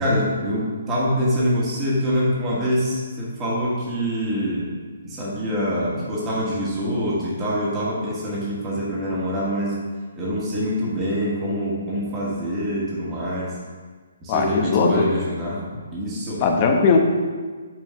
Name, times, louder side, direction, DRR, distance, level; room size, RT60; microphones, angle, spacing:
voice 1, 0.0-4.7 5.0-9.7 10.2-13.5 14.2-15.6 15.9-16.4, equal, 20° right, -7 dB, 1.7 m, -25 dB
voice 2, 14.3-15.1 16.4-17.0, left 5 dB, 35° left, 3 dB, 0.9 m, -19 dB
5.9 x 4.4 x 5.6 m, 1.5 s
figure-of-eight pair, 135°, 0 cm